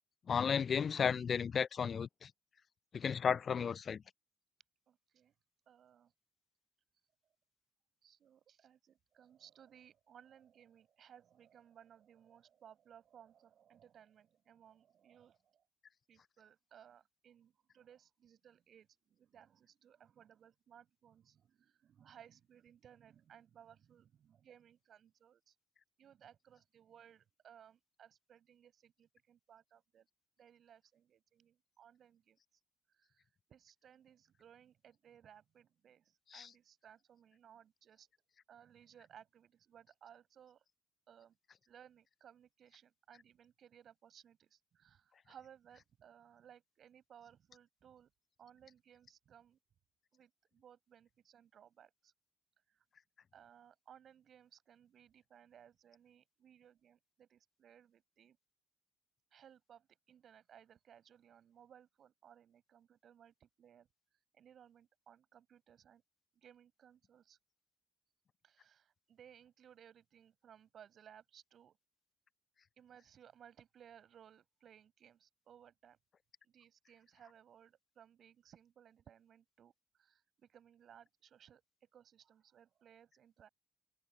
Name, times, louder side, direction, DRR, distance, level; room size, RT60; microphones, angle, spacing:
voice 1, 0.3-2.3 2.9-4.0 36.3-36.5, left 7 dB, 45° left, 0.5 m, -34 dB
voice 2, 4.9-5.3 5.7-6.1 8.0-15.6 16.1-25.5 26.0-30.1 30.4-32.4 32.9-38.1 38.5-40.6 41.1-41.4 41.7-48.1 48.4-49.6 50.1-52.1 52.7-52.8 53.3-58.4 59.3-63.9 64.3-66.0 66.3-67.4 68.4-71.8 72.8-76.0 76.4-79.7 80.0-83.5, right 9 dB, 50° right, 5.9 m, -62 dB
figure-of-eight pair, 45°, 0 cm